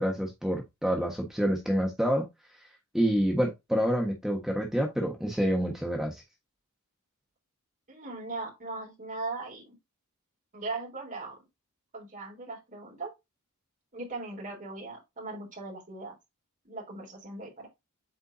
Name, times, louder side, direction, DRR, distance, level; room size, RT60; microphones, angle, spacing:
voice 1, 0.0-2.2 2.9-6.1, equal, ahead, 1.3 m, -27 dB
voice 2, 7.9-9.8 10.5-11.4 11.9-13.1 13.9-16.1 16.6-17.7, right 3 dB, 35° right, 3.7 m, -39 dB
8.1 x 4.6 x 2.7 m
head